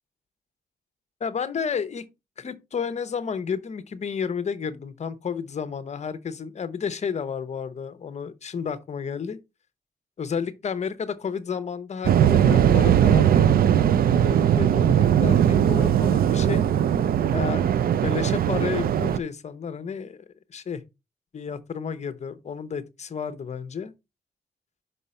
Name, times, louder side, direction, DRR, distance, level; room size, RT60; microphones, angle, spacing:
voice 1, 1.2-2.0 2.4-9.4 10.2-13.8 14.1-16.6 17.3-20.2 20.5-20.8 21.3-23.9, left 6 dB, 45° left, 0.7 m, -31 dB
Waves surf, 12.0-19.2, right 9 dB, 65° right, 0.4 m, -19 dB
5.5 x 5.4 x 4.3 m
wide cardioid pair, 155°, 17 cm